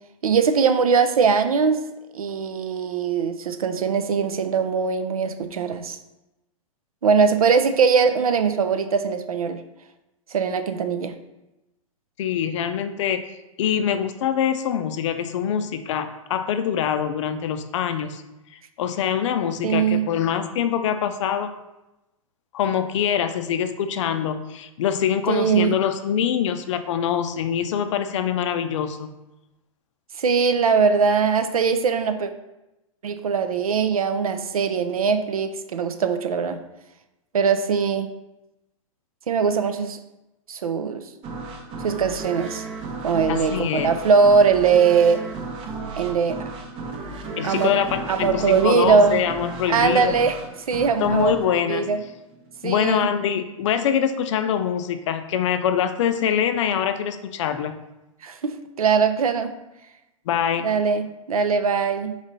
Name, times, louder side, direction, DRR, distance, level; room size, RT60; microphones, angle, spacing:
voice 1, 0.2-1.8 2.1-6.0 7.0-9.6 10.3-11.2 19.6-20.1 25.3-25.8 30.2-32.3 33.0-36.6 37.3-38.1 39.3-40.0 40.5-41.0 41.8-42.6 43.0-45.2 46.0-46.4 47.4-47.7 48.1-49.2 49.7-50.3 50.7-51.3 51.7-52.0 52.6-53.1 58.2-59.5 60.6-62.2, right 5 dB, 80° right, 9 dB, 0.5 m, -21 dB
voice 2, 12.2-13.2 13.6-18.2 18.8-21.5 22.5-29.1 43.3-43.9 47.4-50.1 51.0-51.9 52.6-57.8 60.3-60.8, left 8 dB, 55° left, 9 dB, 0.4 m, -24 dB
sound 1, 41.2-52.7, right 3 dB, 30° right, 0.6 m, -34 dB
3.9 x 3.1 x 4.0 m, 0.97 s
hypercardioid pair, 110°, 18 cm